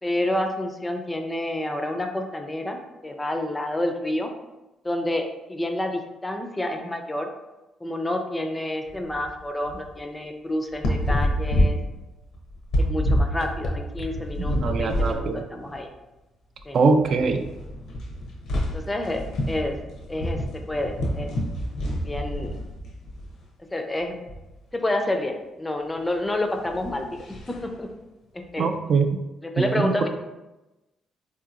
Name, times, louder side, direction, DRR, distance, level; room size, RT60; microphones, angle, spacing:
voice 1, 0.0-4.3 4.8-7.3 7.8-11.8 12.8-15.9 16.7-16.8 18.7-19.8 20.1-21.4 22.0-22.5 23.7-24.2 24.7-27.9 28.3-28.7 29.4-30.1, left 1 dB, 15° left, 4 dB, 0.4 m, -29 dB
sound 1, 8.9-9.3 9.7-9.8 10.7-15.2 15.6-15.8 16.6-16.7 16.9-23.3 24.0-24.4 26.6-27.7, equal, 75° left, 0.7 m, -27 dB
voice 2, 14.4-15.4 16.7-17.4 28.6-29.1 29.6-29.9, right 4 dB, 60° right, 6 dB, 0.3 m, -22 dB
3.8 x 2.8 x 2.4 m, 1.0 s
cardioid pair, 90°, 0 cm